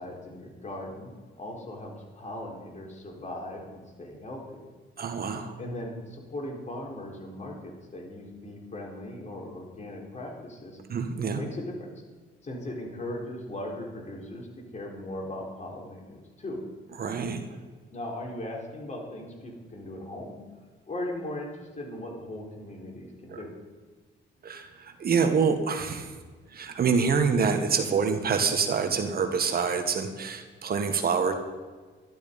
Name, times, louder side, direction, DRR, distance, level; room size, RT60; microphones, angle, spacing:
voice 1, 0.0-4.6 5.6-10.8 11.3-11.9 12.4-16.6 17.9-20.4 20.9-23.6, left 1 dB, 35° left, 0 dB, 4.2 m, -38 dB
voice 2, 5.0-5.5 10.9-11.4 17.0-17.4 23.3-23.4 24.4-26.1 26.5-31.3, right 5 dB, 50° right, 7 dB, 1.7 m, -26 dB
13.0 x 12.0 x 5.4 m, 1.4 s
cardioid pair, 90°, 20 cm